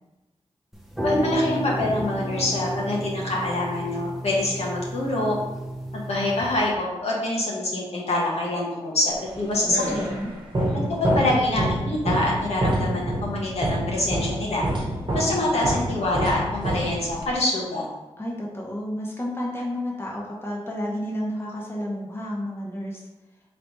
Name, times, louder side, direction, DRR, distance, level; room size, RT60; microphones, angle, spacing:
sound 1, 0.7-6.7, right 1 dB, ahead, 0.7 m, -31 dB
voice 1, 1.0-5.4 5.9-10.1 11.0-14.7 15.1-17.9, left 1 dB, 70° left, -4 dB, 1.1 m, -25 dB
sound 2, 9.3-17.4, right 1 dB, 40° right, 1.1 m, -27 dB
voice 2, 9.9-10.3 18.2-23.1, left 1 dB, 20° left, -3 dB, 0.9 m, -31 dB
3.9 x 3.2 x 3.2 m, 1.0 s
cardioid pair, 60°, 11 cm